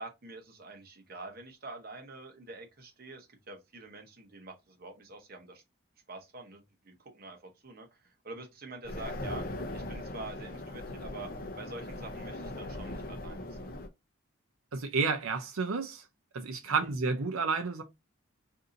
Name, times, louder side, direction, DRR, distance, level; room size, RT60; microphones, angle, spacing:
voice 1, 0.0-5.6 6.1-9.4 9.7-11.3 11.6-13.8 16.8-16.9, right 2 dB, 45° right, 0.8 m, -46 dB
sound 1, 8.8-13.9, left 1 dB, 45° left, 0.6 m, -39 dB
voice 2, 14.7-16.0 16.3-17.8, right 4 dB, 90° right, 0.6 m, -31 dB
2.7 x 2.6 x 3.7 m
head